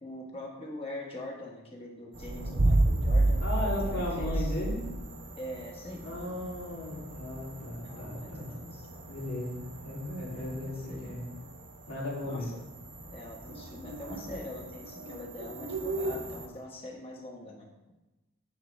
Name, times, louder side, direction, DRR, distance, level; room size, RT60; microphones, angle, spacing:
voice 1, 0.0-4.5 5.4-6.4 7.8-8.9 10.2-11.0 12.2-12.6 13.1-17.9, left 1 dB, 25° left, -1 dB, 1.4 m, -43 dB
sound 1, 2.1-16.5, right 2 dB, 60° right, 1.1 m, -43 dB
sound 2, 2.2-5.0, right 2 dB, 40° right, 0.6 m, -26 dB
voice 2, 3.4-4.8 6.0-8.5 9.1-11.2 11.9-12.5, left 1 dB, 80° left, -4 dB, 3.0 m, -36 dB
7.9 x 7.7 x 3.4 m, 1.1 s
head